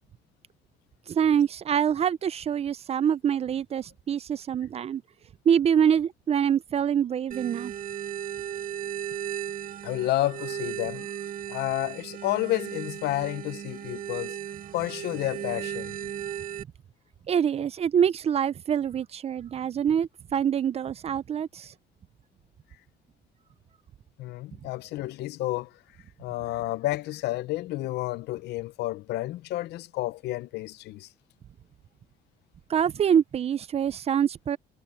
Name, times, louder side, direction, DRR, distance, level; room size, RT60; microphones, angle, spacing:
voice 1, 1.1-5.0 5.5-7.7 17.3-21.7 32.7-34.6, right 8 dB, 35° right, 0.5 m, -25 dB
sound 1, 7.3-16.6, right 10 dB, 55° right, 1.4 m, -36 dB
voice 2, 9.8-11.2 11.5-14.4 14.7-15.9 24.2-25.7 26.2-31.1, left 16 dB, 80° left, 0.8 m, -30 dB
cardioid pair, 110°, 17 cm